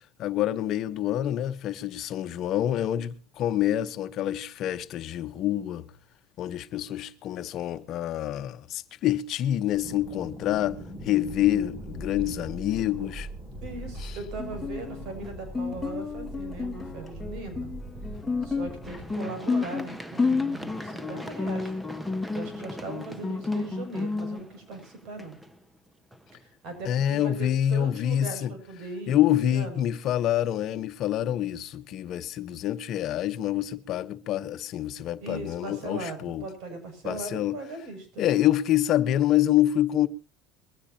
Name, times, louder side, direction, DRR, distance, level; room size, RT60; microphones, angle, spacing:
voice 1, 0.2-5.8 6.4-10.8 11.0-13.3 26.9-28.5 29.1-36.4 37.0-37.6 38.2-40.1, left 12 dB, 55° left, 1.0 m, -26 dB
sound 1, 9.7-19.1, right 1 dB, 35° right, 6.8 m, -41 dB
voice 2, 13.6-17.7 18.4-21.8 22.3-25.4 26.3-29.9 35.2-38.4, right 3 dB, 65° right, 6.9 m, -39 dB
Guitar, 14.4-24.4, left 4 dB, 10° left, 1.8 m, -31 dB
Run, 18.8-26.7 27.2-27.3, equal, 10° right, 1.2 m, -43 dB
22.0 x 15.5 x 2.8 m
supercardioid pair, 105°, 0 cm